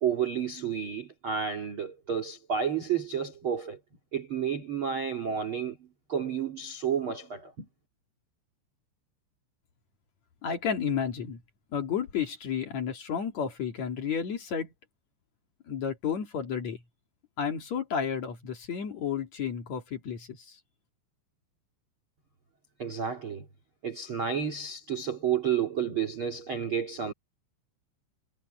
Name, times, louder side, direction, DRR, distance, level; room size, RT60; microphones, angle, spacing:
voice 1, 0.0-3.8 4.1-7.7 22.8-23.5 23.8-27.1, right 7 dB, 40° right, 2.0 m, -31 dB
voice 2, 10.4-11.4 11.7-14.7 15.7-16.8 17.4-20.3, left 7 dB, 50° left, 2.3 m, -31 dB
omnidirectional pair, 5.8 m